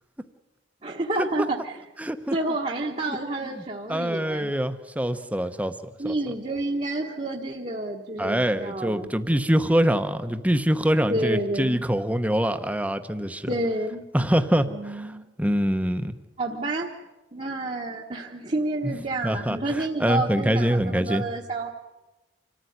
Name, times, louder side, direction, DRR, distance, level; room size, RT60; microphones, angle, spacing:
voice 1, 0.8-1.8 2.3-4.5 6.0-9.1 11.1-11.8 13.5-14.1 14.7-15.3 16.4-16.9 17.3-21.7, right 2 dB, 35° right, -2 dB, 1.4 m, -29 dB
voice 2, 2.0-2.3 3.9-5.7 6.0-6.1 8.2-13.5 14.1-15.1 15.4-16.2 18.8-18.9 19.2-21.2, equal, 10° right, 9 dB, 0.9 m, -24 dB
26.5 x 14.5 x 9.5 m, 1.1 s
head